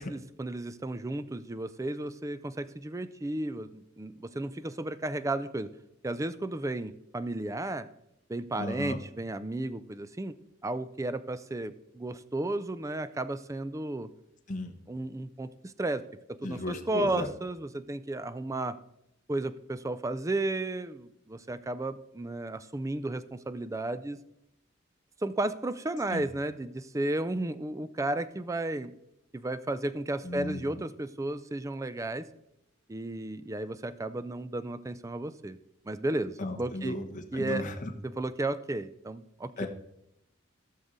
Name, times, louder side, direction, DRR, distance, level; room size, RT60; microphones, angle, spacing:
voice 1, 0.0-5.7 6.0-7.9 8.3-10.3 10.6-14.1 14.9-16.0 16.3-18.8 19.3-24.2 25.2-28.9 29.3-32.3 32.9-35.6 35.9-37.0 37.3-37.6 38.0-39.7, right 2 dB, 15° right, 14 dB, 0.4 m, -33 dB
voice 2, 8.6-9.0 14.5-14.7 16.4-17.3 26.1-26.2 30.2-30.6 36.4-37.9 39.6-39.7, left 1 dB, 40° left, 3 dB, 1.2 m, -35 dB
16.5 x 6.5 x 4.0 m, 0.82 s
head